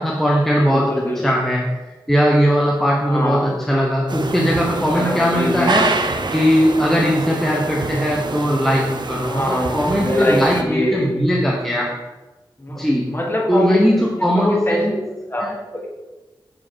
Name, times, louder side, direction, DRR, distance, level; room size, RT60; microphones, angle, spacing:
voice 1, 0.0-1.8 2.1-6.0 6.3-9.4 9.7-11.9 12.7-13.0 13.5-14.9 15.4-15.5, equal, 5° left, -3 dB, 0.9 m, -19 dB
voice 2, 0.6-1.2 3.1-3.6 4.9-5.9 9.3-11.1 12.6-13.9 14.4-14.8 15.3-15.9, left 1 dB, 25° left, -1 dB, 1.5 m, -23 dB
sound 1, 4.1-10.6, right 3 dB, 60° right, 0.6 m, -26 dB
5.7 x 5.0 x 4.4 m, 1.2 s
wide cardioid pair, 70°, 9 cm